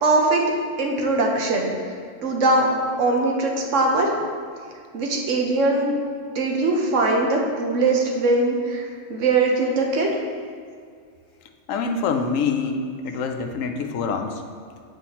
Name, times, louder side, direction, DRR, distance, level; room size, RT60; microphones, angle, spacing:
voice 1, 0.0-0.4 0.8-1.7 2.2-2.7 3.0-4.1 4.9-6.0 6.3-8.8 9.1-10.1, right 2 dB, 70° right, 1 dB, 1.1 m, -21 dB
voice 2, 11.7-14.3, left 5 dB, 85° left, 5 dB, 1.0 m, -25 dB
7.8 x 4.8 x 2.9 m, 2.1 s
omnidirectional pair, 1.3 m